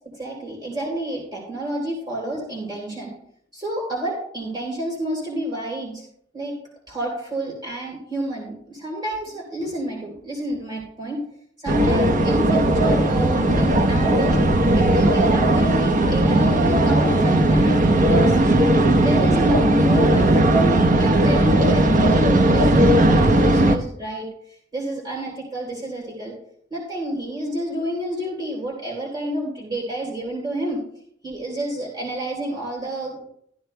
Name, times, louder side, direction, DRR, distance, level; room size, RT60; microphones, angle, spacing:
voice 1, 0.0-3.1 3.5-6.1 6.3-6.6 6.9-11.2 11.6-14.4 14.7-18.4 19.0-26.3 26.7-30.8 31.2-33.3, right 1 dB, 25° right, -3 dB, 3.5 m, -29 dB
sound 1, 11.7-23.8, right 1 dB, 45° right, 0.9 m, -17 dB
14.0 x 12.5 x 2.3 m, 0.67 s
head